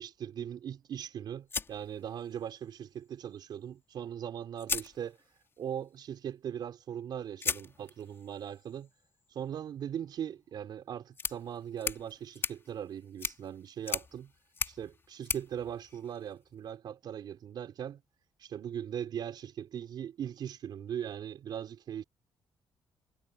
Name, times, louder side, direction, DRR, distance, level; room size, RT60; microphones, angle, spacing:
voice 1, 0.0-5.2 5.6-8.9 9.3-14.3 14.6-18.0 18.4-22.0, right 9 dB, 60° right, 5.2 m, -39 dB
sound 1, 1.5-2.6 4.0-4.1 4.6-5.6 7.4-16.6, left 4 dB, 30° left, 5.1 m, -40 dB
cardioid pair, 150°, 8 cm